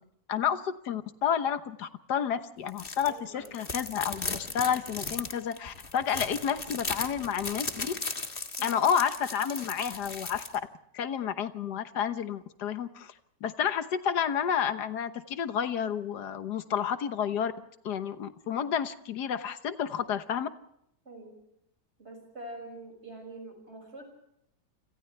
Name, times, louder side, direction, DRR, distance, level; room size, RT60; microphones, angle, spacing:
voice 1, 0.3-8.0 8.6-10.4 10.9-13.1 13.4-17.5 17.8-20.5, left 8 dB, 70° left, 11 dB, 1.7 m, -30 dB
sound 1, 2.7-3.1 3.4-10.5, left 3 dB, 30° left, 1.8 m, -36 dB
voice 2, 3.1-3.5 8.6-8.8 21.0-21.4 22.0-24.0, right 2 dB, 35° right, 4 dB, 6.7 m, -45 dB
29.0 x 26.5 x 3.4 m, 0.76 s
omnidirectional pair, 1.9 m